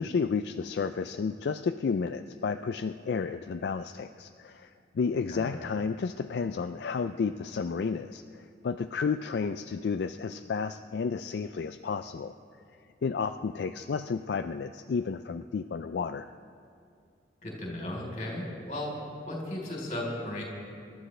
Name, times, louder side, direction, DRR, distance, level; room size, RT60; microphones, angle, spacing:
voice 1, 0.0-12.4 13.0-16.3, left 5 dB, 70° left, 8 dB, 0.3 m, -32 dB
voice 2, 5.3-5.6 17.4-18.9 19.3-20.4, left 1 dB, 40° left, -3 dB, 3.7 m, -35 dB
26.5 x 12.5 x 3.3 m, 2.3 s
head